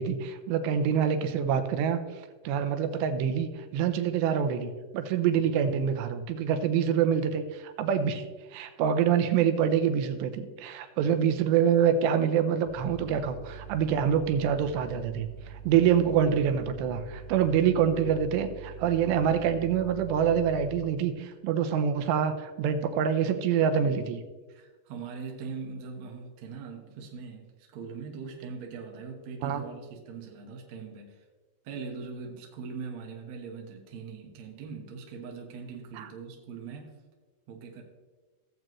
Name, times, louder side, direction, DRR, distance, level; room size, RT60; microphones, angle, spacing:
voice 1, 0.0-2.0 2.4-8.2 8.5-15.3 15.7-24.2 29.4-29.6 36.0-36.1, right 8 dB, 90° right, 8 dB, 2.9 m, -26 dB
sound 1, 12.6-20.8, right 6 dB, 35° left, 4.0 m, -44 dB
voice 2, 24.5-27.5 27.7-31.2 31.6-37.0 37.5-37.8, right 5 dB, 60° right, 1 dB, 1.9 m, -41 dB
16.5 x 7.6 x 3.1 m, 1.3 s
omnidirectional pair, 4.8 m